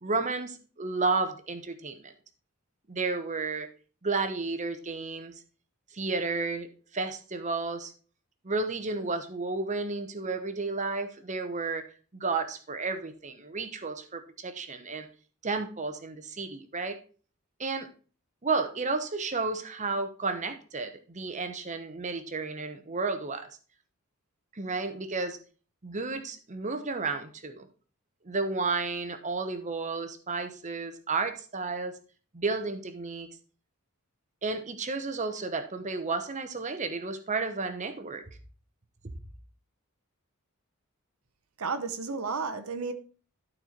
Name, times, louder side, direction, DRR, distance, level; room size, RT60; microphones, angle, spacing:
voice 1, 0.0-2.1 2.9-3.7 4.0-5.3 5.9-6.7 6.9-7.9 8.4-11.8 12.1-15.1 15.4-17.0 17.6-17.9 18.4-23.5 24.5-25.4 25.8-27.7 28.2-31.9 32.3-33.3 34.4-38.4 39.0-39.1, right 3 dB, 35° right, 0.9 m, -32 dB
voice 2, 41.6-42.9, right 4 dB, 80° right, 0.8 m, -32 dB
11.5 x 4.4 x 4.4 m
head